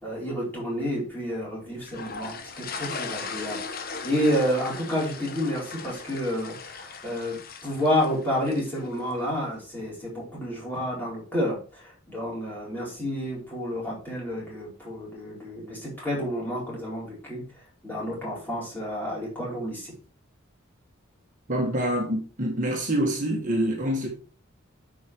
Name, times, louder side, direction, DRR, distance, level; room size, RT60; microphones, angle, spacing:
voice 1, 0.0-17.4 17.8-19.9, equal, 10° left, 4.7 m, -30 dB
sound 1, 1.8-9.1, left 5 dB, 45° left, 0.9 m, -38 dB
voice 2, 21.5-24.1, right 1 dB, 40° right, 1.8 m, -26 dB
9.4 x 5.1 x 4.8 m
head